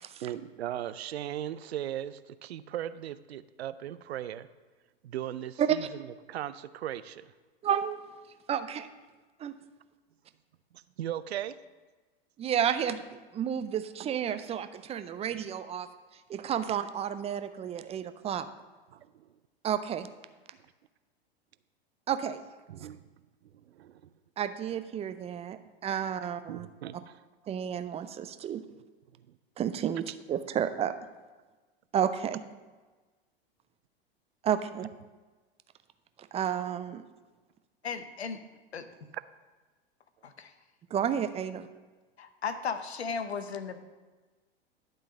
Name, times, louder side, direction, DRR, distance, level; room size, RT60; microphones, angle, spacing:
voice 1, 0.2-4.5 5.0-7.3 10.7-11.6 18.9-19.3 22.7-23.1 23.5-24.0 26.5-27.2 29.3-29.4, right 11 dB, 80° right, 14 dB, 0.5 m, -38 dB
voice 2, 5.6-5.9 7.6-8.0 8.5-8.9 9.4-9.5 12.4-15.9 16.3-18.5 19.6-20.1 22.1-22.4 24.4-26.7 27.5-28.6 29.6-30.0 30.3-30.9 31.9-32.4 34.4-34.9 36.3-37.0 40.9-41.7, right 9 dB, 20° right, 10 dB, 0.4 m, -31 dB
voice 3, 37.8-38.4 38.7-38.9 40.2-40.5 42.2-43.8, left 6 dB, 90° left, 10 dB, 0.8 m, -35 dB
11.5 x 3.8 x 6.2 m, 1.3 s
hypercardioid pair, 95°, 31 cm